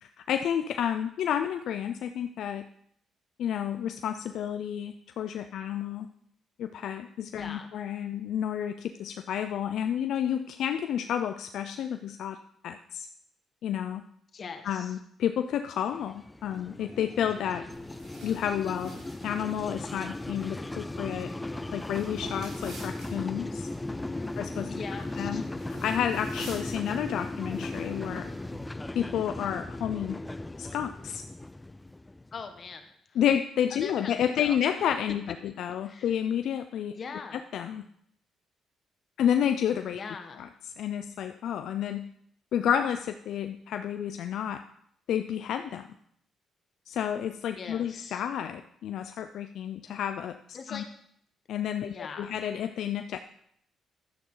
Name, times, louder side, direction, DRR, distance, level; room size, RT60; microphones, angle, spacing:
voice 1, 0.0-2.6 3.4-6.1 6.6-12.4 12.6-13.1 13.6-14.0 14.6-17.6 18.2-18.9 19.2-21.3 21.7-23.7 24.4-24.7 25.2-25.4 25.8-28.3 28.9-30.2 30.6-31.2 33.1-37.0 37.3-37.8 39.2-40.0 40.4-42.1 42.5-44.6 45.1-45.8 46.9-50.8 51.5-53.2, left 9 dB, 75° left, 7 dB, 0.5 m, -30 dB
voice 2, 7.4-7.7 14.3-14.9 23.9-24.3 24.7-25.4 32.3-33.2 33.8-34.6 35.8-36.1 36.9-37.4 39.9-40.5 47.6-48.2 50.5-50.9 51.8-52.4, left 5 dB, 45° left, 6 dB, 1.5 m, -42 dB
sound 1, 15.9-32.6, left 2 dB, 15° left, 0.4 m, -37 dB
sound 2, 17.7-28.6, right 2 dB, 75° right, 3.6 m, -51 dB
11.5 x 9.3 x 3.9 m, 0.68 s
cardioid pair, 90°, 0 cm